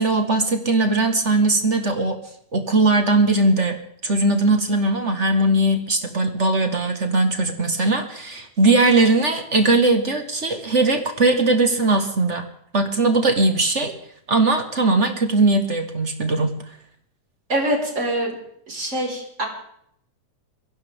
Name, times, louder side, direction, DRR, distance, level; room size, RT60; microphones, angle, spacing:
voice 1, 0.0-2.2 2.5-3.8 4.0-12.5 12.7-13.9 14.3-16.5, right 2 dB, 40° right, 5 dB, 1.0 m, -19 dB
voice 2, 17.5-18.4 18.7-19.5, right 1 dB, 20° right, -2 dB, 5.1 m, -24 dB
22.5 x 16.0 x 3.6 m, 0.69 s
omnidirectional pair, 3.6 m